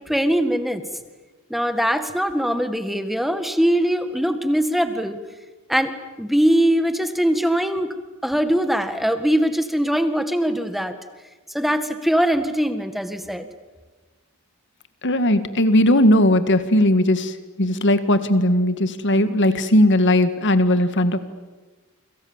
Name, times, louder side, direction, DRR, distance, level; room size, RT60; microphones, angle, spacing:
voice 1, 0.1-0.8 1.5-5.2 5.7-7.9 8.2-10.9 11.5-13.5, equal, ahead, 9 dB, 1.8 m, -21 dB
voice 2, 15.0-17.3 17.6-21.2, left 1 dB, 55° left, 11 dB, 1.9 m, -18 dB
29.0 x 26.0 x 7.4 m, 1.2 s
head